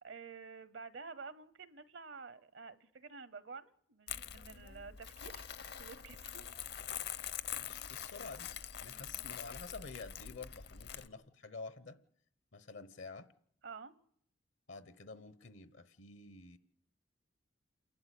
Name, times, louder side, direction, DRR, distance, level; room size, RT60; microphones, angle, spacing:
voice 1, 0.0-5.4 5.8-6.5 8.9-9.2 13.6-13.9, right 5 dB, 70° right, 0.9 m, -50 dB
Crumpling crinkling, 4.1-11.1, left 9 dB, 55° left, 0.7 m, -44 dB
voice 2, 7.5-8.5 8.8-12.0 12.5-13.3 14.7-16.6, left 4 dB, 75° left, 1.1 m, -49 dB
28.5 x 12.0 x 8.4 m
head